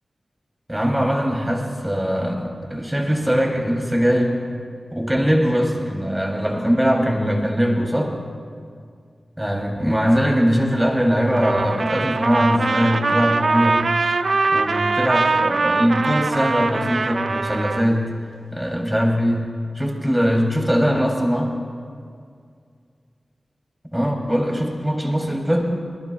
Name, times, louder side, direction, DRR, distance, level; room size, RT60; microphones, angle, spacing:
voice 1, 0.7-4.4 4.9-8.1 9.4-13.9 14.5-18.1 18.5-19.5 19.7-21.5 23.9-25.6, equal, 10° right, 0 dB, 3.2 m, -21 dB
Trumpet, 11.3-17.8, right 3 dB, 70° right, 0.6 m, -22 dB
25.0 x 20.5 x 2.4 m, 2.2 s
wide cardioid pair, 75°, 0 cm